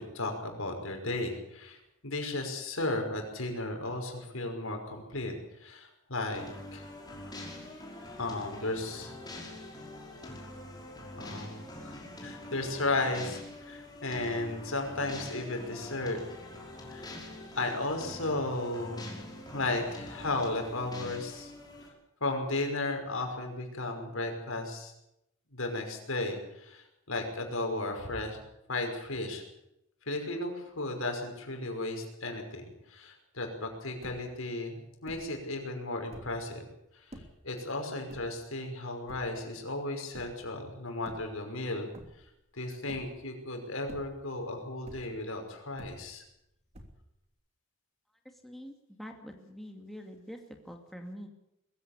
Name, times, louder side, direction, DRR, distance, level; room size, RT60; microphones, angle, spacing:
voice 1, 0.0-1.8 2.0-6.4 6.7-6.9 8.2-9.1 11.2-16.2 16.9-17.2 17.5-19.1 19.5-21.5 22.2-24.9 25.5-28.4 28.7-29.4 30.1-34.7 35.0-36.6 36.9-41.9 42.5-46.2, left 2 dB, 75° left, 4 dB, 5.6 m, -35 dB
sound 1, 6.3-21.9, left 1 dB, 20° left, 5.5 m, -45 dB
sound 2, 34.0-34.5 35.1-35.5 36.0-36.5 37.1-37.5 38.1-38.7 39.1-39.5 40.1-40.5 40.9-41.6 41.9-42.5 42.9-43.4 43.8-44.4 44.9-45.3 45.8-46.4 46.7-47.3, equal, 30° right, 3.0 m, -50 dB
voice 2, 48.4-50.4 50.6-51.3, equal, ahead, 3 dB, 2.3 m, -45 dB
22.0 x 15.5 x 8.7 m, 0.84 s
head